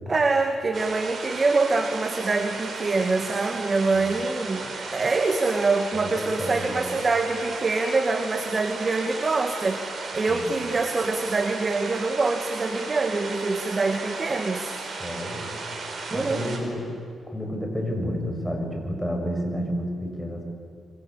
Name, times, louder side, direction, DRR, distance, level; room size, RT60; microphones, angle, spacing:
voice 1, 0.1-14.7 16.1-16.5, right 3 dB, 35° right, 6 dB, 2.0 m, -25 dB
sound 1, 0.7-16.6, right 3 dB, 55° right, 5.8 m, -35 dB
voice 2, 5.9-7.0 10.3-10.5 15.0-15.5 16.1-16.8 17.3-20.4, equal, 5° left, 2 dB, 7.0 m, -30 dB
26.5 x 24.5 x 8.4 m, 2.2 s
cardioid pair, 80°, 0 cm